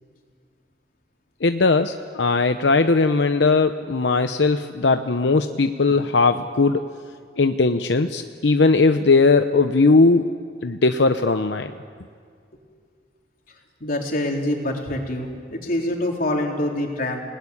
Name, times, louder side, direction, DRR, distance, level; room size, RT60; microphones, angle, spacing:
voice 1, 1.4-6.8 7.4-10.4 10.6-11.7, left 3 dB, 90° left, 8 dB, 0.8 m, -19 dB
voice 2, 13.8-17.2, left 1 dB, 55° left, 0 dB, 3.8 m, -25 dB
29.5 x 19.5 x 9.9 m, 2.1 s
head